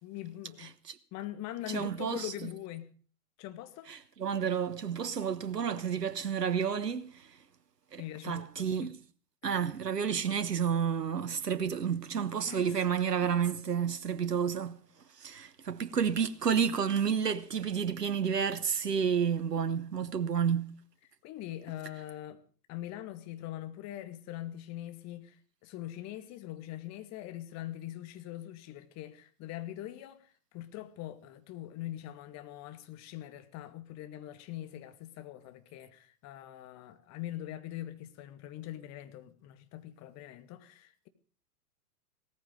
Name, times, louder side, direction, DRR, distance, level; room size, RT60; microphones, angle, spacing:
voice 1, 0.0-0.7 1.1-2.9 3.4-3.9 8.0-8.9 9.4-9.6 12.5-12.7 21.2-22.4 22.7-41.1, left 13 dB, 35° left, 2.2 m, -43 dB
voice 2, 1.7-2.3 3.9-7.3 7.9-8.9 9.4-14.8 15.2-20.7, right 7 dB, 85° right, 1.4 m, -30 dB
18.0 x 14.5 x 5.3 m
figure-of-eight pair, 105°, 47 cm